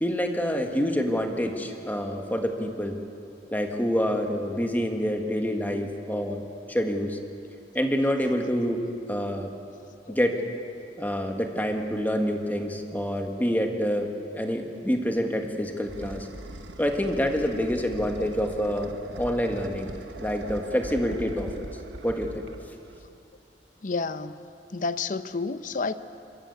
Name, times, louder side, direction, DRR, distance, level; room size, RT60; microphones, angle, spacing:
voice 1, 0.0-3.0 3.5-7.2 7.7-8.8 9.1-9.5 10.1-10.4 11.0-16.3 16.8-18.9 19.2-19.9 20.2-21.7 22.0-22.3, equal, 10° left, 4 dB, 1.6 m, -27 dB
sound 1, 15.3-23.2, right 2 dB, 85° right, 1.1 m, -41 dB
voice 2, 23.8-24.4 24.7-25.9, left 4 dB, 45° left, 12 dB, 0.7 m, -30 dB
27.0 x 14.0 x 8.3 m, 2.6 s
head